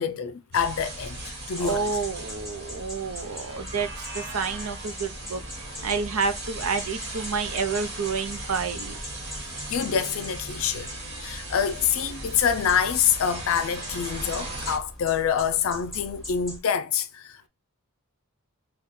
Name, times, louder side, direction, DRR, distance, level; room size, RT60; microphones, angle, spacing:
voice 1, 0.0-1.9 9.7-10.9 11.2-17.5, left 8 dB, 70° left, 0.4 m, -26 dB
sound 1, 0.5-14.8, right 2 dB, 50° right, 1.3 m, -38 dB
sound 2, 1.5-16.6, equal, ahead, 1.3 m, -42 dB
voice 2, 1.6-5.4 5.8-9.0, right 5 dB, 90° right, 0.7 m, -29 dB
3.7 x 2.3 x 4.0 m
head